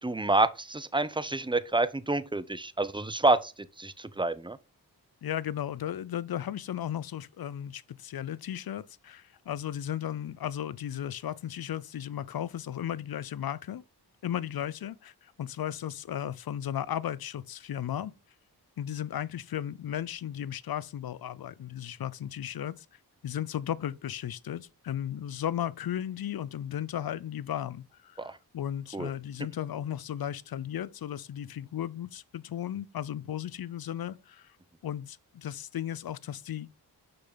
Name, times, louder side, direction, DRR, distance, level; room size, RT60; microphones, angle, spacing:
voice 1, 0.0-4.6 28.2-28.4 28.9-29.1, right 2 dB, 10° right, 0.7 m, -28 dB
voice 2, 5.2-13.8 14.2-18.1 18.8-22.9 23.2-34.5 34.8-36.8, left 10 dB, 60° left, 0.6 m, -35 dB
6.8 x 5.6 x 3.9 m
cardioid pair, 50°, 41 cm